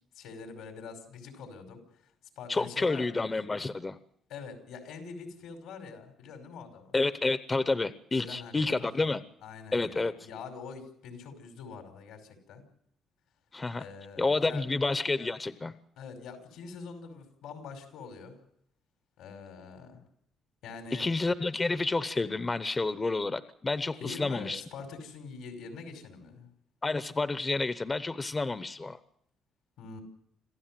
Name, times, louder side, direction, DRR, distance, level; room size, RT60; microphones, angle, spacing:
voice 1, 0.1-1.8 2.4-3.1 4.3-7.0 8.1-9.0 9.4-12.6 13.7-14.6 16.0-18.4 19.2-20.0 20.6-21.1 24.0-26.5 29.8-30.0, left 5 dB, 85° left, 5 dB, 5.1 m, -44 dB
voice 2, 2.5-4.0 6.9-9.2 9.7-10.1 13.5-13.8 14.2-15.7 20.9-24.6 26.8-29.0, left 3 dB, 20° left, 12 dB, 0.8 m, -29 dB
26.5 x 14.5 x 7.6 m, 0.73 s
cardioid pair, 115°, 0 cm